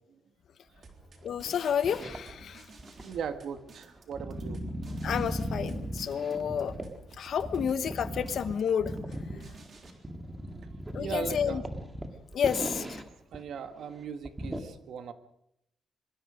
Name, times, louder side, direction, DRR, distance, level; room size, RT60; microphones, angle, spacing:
sound 1, 0.8-9.9, right 3 dB, 35° right, 3.6 m, -54 dB
voice 1, 1.2-2.6 5.0-6.7 7.2-8.9 10.9-11.6 12.3-13.0, left 8 dB, 55° left, 12 dB, 1.0 m, -30 dB
sound 2, 1.3-2.4 2.8-7.0 7.4-13.1 13.3-13.4 13.8-13.9 14.2-14.6, right 1 dB, 15° right, 2.0 m, -37 dB
voice 2, 3.0-4.6 9.3-9.5 11.0-11.7 13.3-15.1, right 7 dB, 60° right, 8 dB, 1.8 m, -38 dB
24.0 x 22.5 x 5.2 m, 0.78 s
wide cardioid pair, 175°, 0 cm